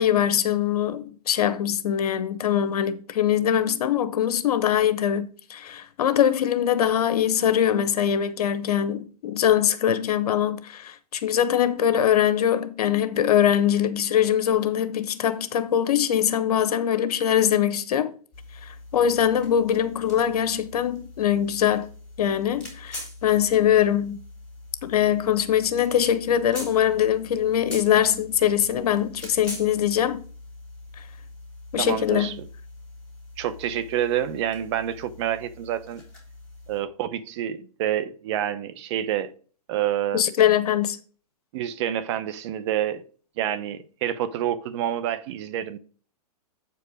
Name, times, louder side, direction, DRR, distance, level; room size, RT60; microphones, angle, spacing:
voice 1, 0.0-18.1 18.6-21.9 22.2-24.2 24.8-30.2 31.7-32.4 40.1-41.0, left 10 dB, 70° left, 1.0 m, -22 dB
sound 1, 18.3-36.8, left 2 dB, 5° left, 3.3 m, -43 dB
voice 2, 31.8-32.5 33.4-36.0 36.7-39.3 39.7-40.2 41.5-43.0 43.4-45.8, right 11 dB, 45° right, 0.7 m, -28 dB
8.0 x 4.6 x 5.0 m
hypercardioid pair, 140°, 20 cm